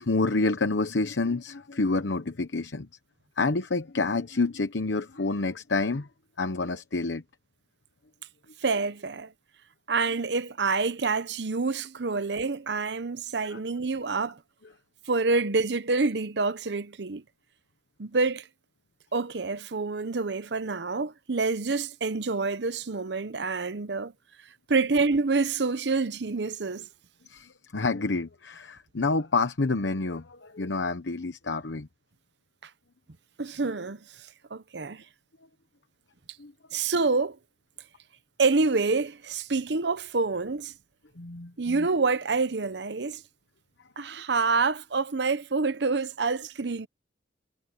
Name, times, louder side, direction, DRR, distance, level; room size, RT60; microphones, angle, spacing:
voice 1, 0.0-2.9 3.4-6.1 6.4-7.2 13.4-13.6 27.3-31.9 36.4-36.5 41.2-41.9, left 3 dB, 85° left, 1.0 m, -28 dB
voice 2, 8.6-9.3 9.9-14.4 15.1-17.2 18.0-18.5 19.1-24.1 24.7-26.9 33.4-34.0 34.5-35.0 36.7-37.4 38.4-40.7 41.6-43.2 44.0-46.9, right 4 dB, 70° right, 0.8 m, -27 dB
head